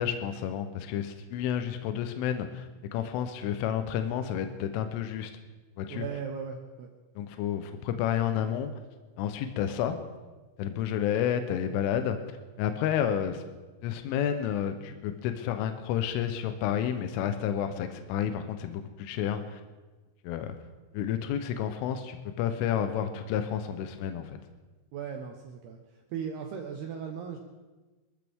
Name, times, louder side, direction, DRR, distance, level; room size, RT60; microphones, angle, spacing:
voice 1, 0.0-2.7 2.9-5.3 5.8-6.0 7.2-8.7 9.2-10.0 10.6-12.2 12.6-13.4 13.8-19.6 20.3-20.5 20.9-24.4, left 9 dB, 80° left, 8 dB, 3.3 m, -30 dB
voice 2, 5.9-6.9 24.9-25.8 26.1-27.4, right 7 dB, 75° right, 3 dB, 2.5 m, -37 dB
25.0 x 14.0 x 3.6 m, 1.2 s
omnidirectional pair, 5.8 m